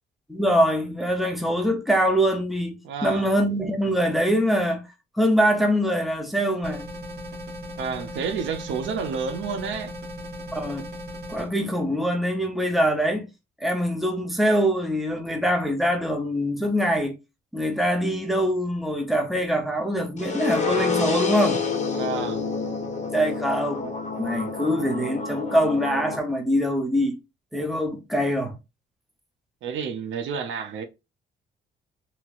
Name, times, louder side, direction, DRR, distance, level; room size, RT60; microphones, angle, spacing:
voice 1, 0.3-4.8 5.1-6.9 10.5-10.8 11.3-13.3 13.6-17.2 17.5-21.6 23.1-23.9 24.2-27.2 27.5-28.6, equal, ahead, 0.9 m, -23 dB
voice 2, 2.8-3.3 7.8-9.9 21.9-22.4 29.6-30.8, right 6 dB, 75° right, 0.6 m, -30 dB
sound 1, 6.6-11.5, equal, 55° right, 1.6 m, -37 dB
sound 2, 20.2-26.2, left 4 dB, 35° left, 1.1 m, -28 dB
3.0 x 2.8 x 2.5 m
cardioid pair, 90°, 20 cm